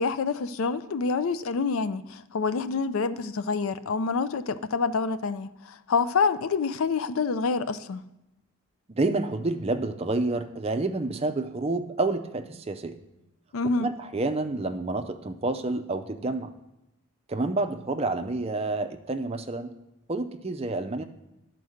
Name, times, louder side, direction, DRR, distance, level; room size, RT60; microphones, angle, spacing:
voice 1, 0.0-8.0 13.5-13.9, left 4 dB, 70° left, 0.4 m, -27 dB
voice 2, 8.9-12.9 13.8-16.5 17.3-19.7 20.1-21.0, right 2 dB, 25° right, 0.5 m, -29 dB
11.0 x 4.6 x 6.4 m
head